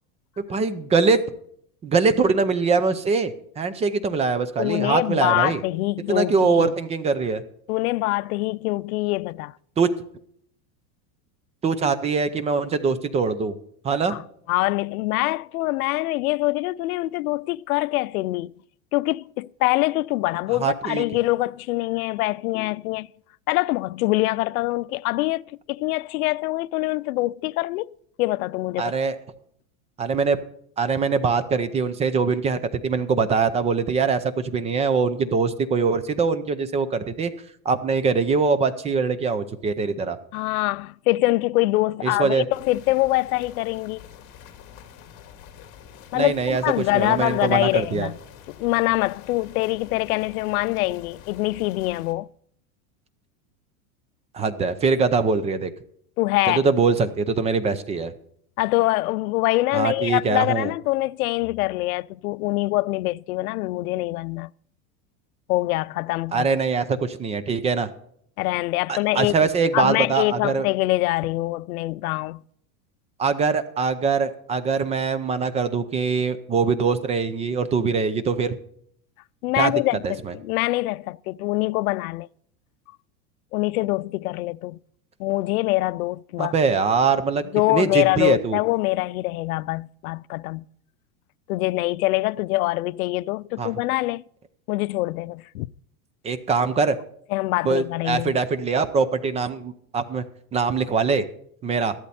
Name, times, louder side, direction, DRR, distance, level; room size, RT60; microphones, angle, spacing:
voice 1, 0.4-1.2 1.8-5.6 6.1-7.4 9.8-9.9 11.6-13.6 13.8-14.2 20.6-21.0 28.8-29.2 30.0-30.4 30.8-37.3 37.6-40.2 42.0-42.5 46.1-48.1 54.3-55.7 56.5-58.1 59.7-60.7 66.3-67.9 68.9-70.7 73.2-78.6 79.6-79.7 80.0-80.3 86.4-87.4 87.7-88.6 93.6-93.7 96.2-97.0 97.6-100.2 100.5-101.2 101.6-101.9, right 5 dB, 15° right, 0.5 m, -23 dB
voice 2, 4.6-6.7 7.7-9.5 14.1-14.2 14.5-18.5 18.9-23.1 23.5-28.9 40.3-44.0 46.1-48.2 48.5-52.3 56.2-56.7 58.6-64.5 65.5-66.5 68.4-69.3 69.7-72.4 79.4-82.3 83.5-84.8 85.2-86.5 87.5-90.6 91.5-94.2 94.7-95.7 97.3-98.4, left 19 dB, 90° left, 0.6 m, -24 dB
sound 1, 42.5-52.1, left 8 dB, 45° left, 2.3 m, -46 dB
13.5 x 12.0 x 4.2 m
supercardioid pair, 155°, 42 cm